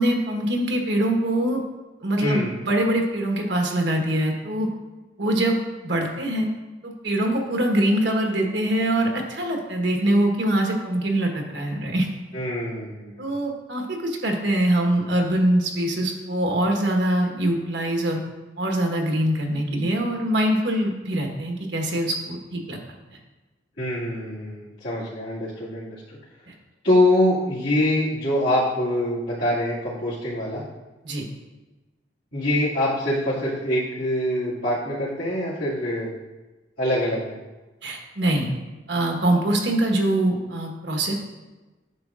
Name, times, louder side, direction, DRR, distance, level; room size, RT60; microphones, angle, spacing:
voice 1, 0.0-1.6 2.0-4.7 5.2-6.5 6.8-12.1 13.2-18.2 18.6-22.8 26.5-26.6 31.0-31.2 37.8-38.5 38.9-41.1, right 1 dB, 75° right, 1 dB, 1.2 m, -23 dB
voice 2, 2.2-2.5 12.3-13.2 23.8-26.2 26.8-30.6 32.3-36.1 36.8-37.4, left 1 dB, 85° left, -12 dB, 2.3 m, -24 dB
9.5 x 6.3 x 2.5 m, 1.2 s
head